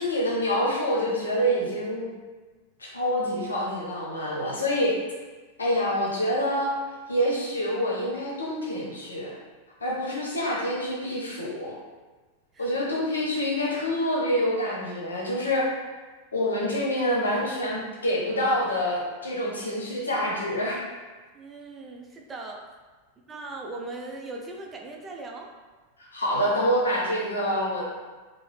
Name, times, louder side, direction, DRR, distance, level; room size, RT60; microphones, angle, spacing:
voice 1, 0.0-2.1 2.8-4.9 5.6-6.7 7.1-9.3 9.8-11.8 12.6-15.6 16.3-20.8 26.1-27.8, equal, 75° left, -4 dB, 0.8 m, -26 dB
voice 2, 16.6-17.3 21.3-22.6 23.3-25.5, right 2 dB, 20° right, 0 dB, 0.4 m, -39 dB
3.6 x 2.0 x 3.2 m, 1.3 s
figure-of-eight pair, 90°, 0 cm